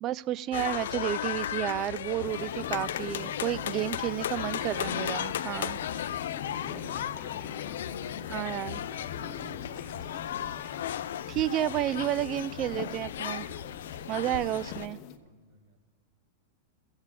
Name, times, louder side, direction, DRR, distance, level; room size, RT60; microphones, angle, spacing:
voice 1, 0.0-5.8 8.3-8.8 11.3-13.5 14.1-15.0, right 13 dB, 35° right, 19 dB, 0.3 m, -31 dB
sound 1, 0.5-14.9, left 10 dB, 80° left, 0.4 m, -35 dB
sound 2, 2.2-15.2, left 7 dB, 45° left, 1.1 m, -44 dB
sound 3, 2.4-5.6 6.5-8.6 8.9-12.7 13.4-14.4, left 7 dB, 25° left, 0.6 m, -55 dB
voice 2, 5.9-7.1 7.5-8.6 8.9-10.1 15.1-15.8, right 3 dB, 65° right, 0 dB, 2.9 m, -56 dB
23.5 x 7.9 x 3.7 m, 1.4 s
hypercardioid pair, 130°, 0 cm